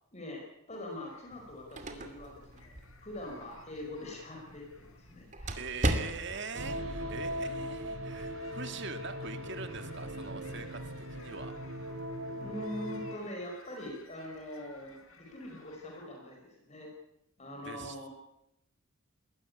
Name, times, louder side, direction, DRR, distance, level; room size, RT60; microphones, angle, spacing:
voice 1, 0.1-2.7 3.0-5.7 12.4-16.9 17.4-18.1, left 1 dB, 30° left, 1 dB, 5.1 m, -43 dB
sound 1, 0.7-16.0, left 3 dB, 80° left, 4.5 m, -59 dB
sound 2, 1.3-6.6, right 1 dB, 35° right, 2.5 m, -38 dB
voice 2, 5.6-11.5 17.6-18.1, right 4 dB, 55° right, 8 dB, 2.1 m, -43 dB
sound 3, 6.5-13.1, equal, 80° right, 3.7 m, -39 dB
21.0 x 17.0 x 9.8 m, 0.85 s
head